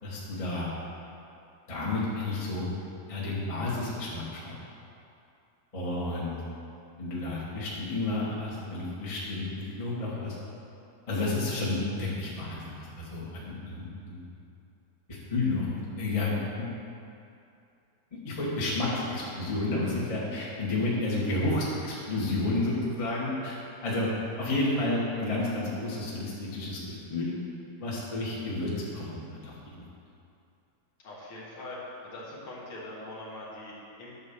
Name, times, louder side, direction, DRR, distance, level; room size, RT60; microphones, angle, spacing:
voice 1, 0.0-0.7 1.7-2.7 3.1-4.5 5.7-6.4 7.0-10.3 11.1-14.2 15.1-16.7 18.2-23.6 23.8-24.1 24.4-27.3 27.8-29.8, left 2 dB, 20° left, -7 dB, 0.8 m, -31 dB
voice 2, 31.0-31.8 32.0-34.1, left 1 dB, 50° left, -6 dB, 2.1 m, -42 dB
9.7 x 4.3 x 6.9 m, 2.6 s
omnidirectional pair, 3.8 m